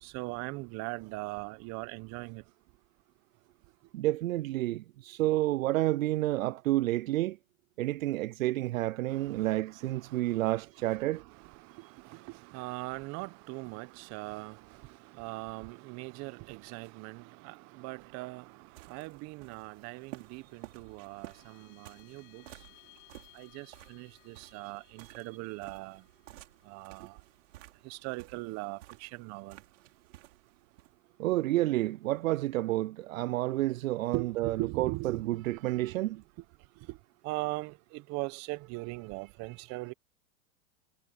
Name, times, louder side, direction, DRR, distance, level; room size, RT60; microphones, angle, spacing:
voice 1, 0.0-2.4 9.1-22.5 23.3-26.0 26.6-27.2 27.8-29.6 34.1-35.4 35.7-35.8 36.9-37.0 37.2-39.9, right 24 dB, 40° right, 1.2 m, -40 dB
voice 2, 3.9-7.4 7.8-11.2 31.2-36.2, right 16 dB, 80° right, 0.5 m, -30 dB
sound 1, 18.1-30.9, right 17 dB, 65° right, 5.7 m, -54 dB
sound 2, 19.6-30.3, left 31 dB, 50° left, 7.0 m, -64 dB
hypercardioid pair, 120°, 39 cm